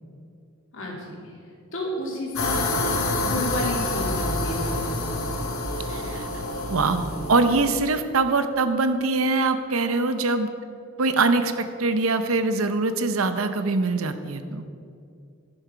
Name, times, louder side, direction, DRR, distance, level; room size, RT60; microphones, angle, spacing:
voice 1, 0.7-1.2 1.7-5.0, left 1 dB, 65° left, -3 dB, 2.7 m, -31 dB
sound 1, 2.3-7.7, left 2 dB, 80° left, 1.7 m, -27 dB
voice 2, 5.9-6.3 6.7-10.5 11.0-14.7, right 3 dB, 75° right, 9 dB, 0.8 m, -23 dB
11.5 x 9.8 x 4.5 m, 2.5 s
head